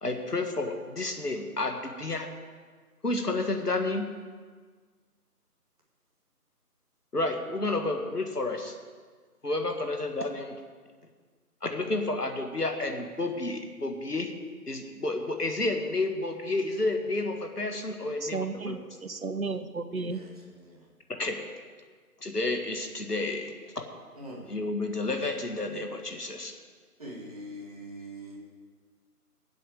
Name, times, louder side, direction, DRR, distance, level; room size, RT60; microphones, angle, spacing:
voice 1, 0.0-2.3 3.0-4.1 7.1-8.7 9.4-10.6 11.6-14.3 14.7-18.7 21.2-21.4 22.2-23.8 24.5-26.5, left 2 dB, 75° left, 4 dB, 1.8 m, -30 dB
voice 2, 18.2-20.2, right 4 dB, 60° right, 11 dB, 0.9 m, -33 dB
voice 3, 27.0-28.4, equal, 25° right, -3 dB, 1.9 m, -41 dB
21.0 x 7.8 x 4.9 m, 1.5 s
figure-of-eight pair, 160°, 47 cm